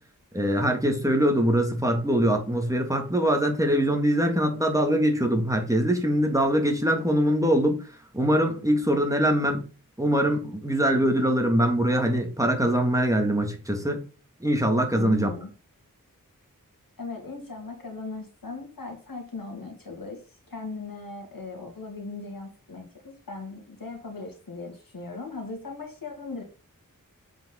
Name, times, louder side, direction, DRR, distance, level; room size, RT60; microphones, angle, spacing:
voice 1, 0.3-7.8 8.1-9.6 10.0-14.0 14.4-15.3, equal, 10° right, 2.0 m, -23 dB
voice 2, 14.9-15.5 17.0-26.4, left 3 dB, 85° left, 2.2 m, -38 dB
7.4 x 5.0 x 3.8 m
wide cardioid pair, 55°, 34 cm